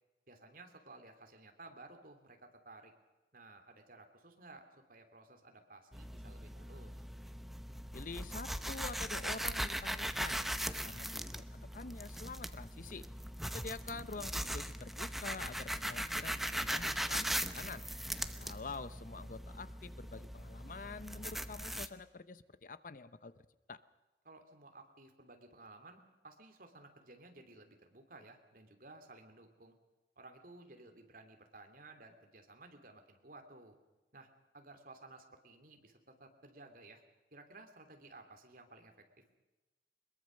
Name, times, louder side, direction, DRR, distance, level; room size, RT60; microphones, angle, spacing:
voice 1, 0.3-2.9 3.3-7.0 18.1-18.3 24.2-29.8 30.2-33.8 34.1-34.3 34.5-37.0 37.3-38.9, right 2 dB, 50° right, 5 dB, 3.0 m, -56 dB
sound 1, 5.9-21.9, equal, ahead, 0.8 m, -40 dB
voice 2, 7.9-13.1 13.5-17.3 17.5-17.8 18.4-23.3 23.7-23.8, left 3 dB, 50° left, 14 dB, 0.8 m, -47 dB
22.5 x 21.5 x 6.5 m, 1.1 s
head